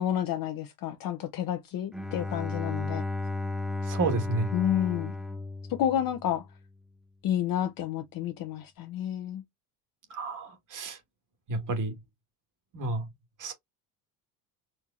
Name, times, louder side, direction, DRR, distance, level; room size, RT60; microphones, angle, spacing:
voice 1, 0.0-3.0 4.5-5.1 5.7-6.5 7.2-9.4, left 10 dB, 50° left, 0.7 m, -30 dB
Bowed string instrument, 1.9-6.6, left 2 dB, ahead, 0.5 m, -34 dB
voice 2, 3.8-4.5 10.1-11.0 11.5-11.9 12.7-13.1 13.4-13.5, right 3 dB, 45° right, 1.4 m, -30 dB
4.5 x 2.7 x 2.3 m
supercardioid pair, 100°, 44 cm